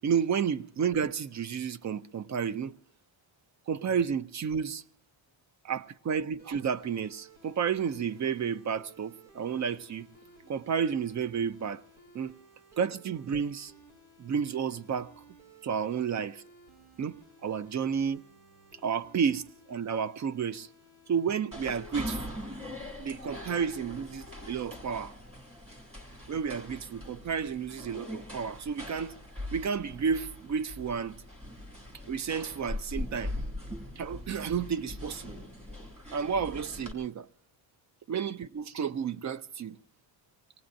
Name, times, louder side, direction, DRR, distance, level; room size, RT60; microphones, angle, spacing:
voice 1, 0.0-2.7 3.7-4.8 5.6-10.1 10.5-11.8 12.1-12.3 12.8-13.7 14.2-15.1 15.6-16.4 17.0-18.2 18.8-20.7 21.1-22.2 23.0-25.1 26.3-29.1 29.5-31.2 32.1-33.3 34.0-35.4 36.1-37.3 38.1-39.8, right 7 dB, 40° right, 0.5 m, -31 dB
sound 1, 6.4-21.3, right 2 dB, 85° right, 4.8 m, -57 dB
sound 2, 21.5-36.9, left 1 dB, 15° right, 2.4 m, -41 dB
24.5 x 18.5 x 2.6 m
cardioid pair, 150°, 47 cm